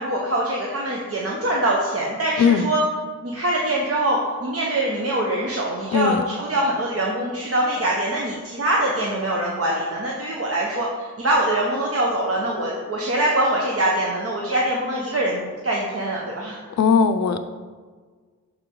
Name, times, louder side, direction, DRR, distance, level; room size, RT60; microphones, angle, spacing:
voice 1, 0.0-2.8 3.2-6.1 6.4-16.6, right 1 dB, 50° right, -2 dB, 0.9 m, -23 dB
voice 2, 2.4-2.7 5.9-6.2 16.8-17.4, left 6 dB, 60° left, 9 dB, 0.5 m, -18 dB
6.4 x 4.7 x 3.8 m, 1.5 s
cardioid pair, 85°, 31 cm